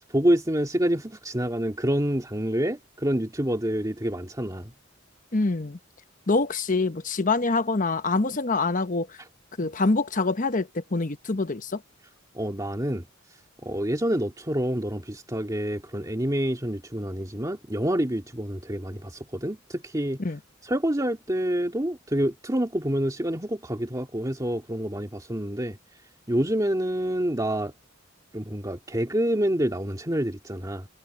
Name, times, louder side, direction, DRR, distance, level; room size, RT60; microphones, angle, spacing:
voice 1, 0.1-4.7 12.3-13.0 13.6-20.2 20.6-25.8 26.3-27.7 28.3-30.9, equal, 15° right, 2.2 m, -27 dB
voice 2, 5.3-5.8 6.3-9.2 9.6-11.8 20.2-20.4, left 3 dB, 40° left, 1.0 m, -25 dB
head